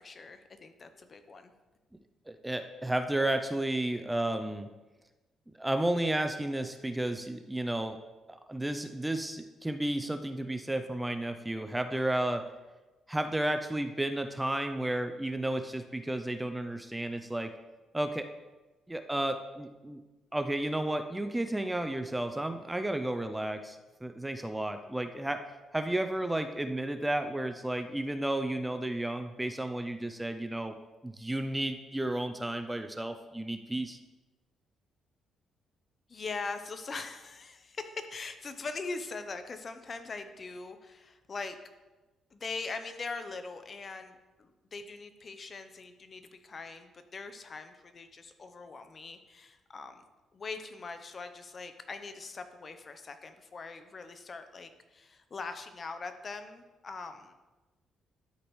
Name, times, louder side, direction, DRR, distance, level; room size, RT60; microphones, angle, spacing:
voice 1, 0.0-1.5 36.1-41.6 42.3-50.0 50.3-57.3, left 4 dB, 40° left, 9 dB, 0.7 m, -42 dB
voice 2, 2.3-4.7 5.6-8.0 8.3-12.5 13.1-17.5 17.9-18.3 18.9-20.0 20.3-25.4 25.7-30.7 31.0-34.0, right 1 dB, 10° right, 8 dB, 0.5 m, -32 dB
12.0 x 5.1 x 3.2 m, 1.1 s
cardioid pair, 90°, 0 cm